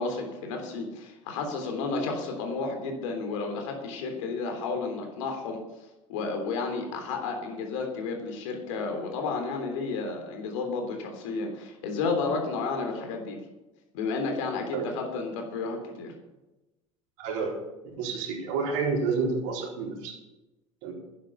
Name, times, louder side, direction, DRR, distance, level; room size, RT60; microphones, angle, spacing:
voice 1, 0.0-5.6 6.1-13.4 13.9-16.1, left 4 dB, 75° left, 3 dB, 3.4 m, -32 dB
voice 2, 17.2-17.6 17.9-20.1 20.8-20.9, right 4 dB, 70° right, -1 dB, 4.2 m, -29 dB
11.5 x 9.9 x 6.8 m, 1.0 s
hypercardioid pair, 70°, 16 cm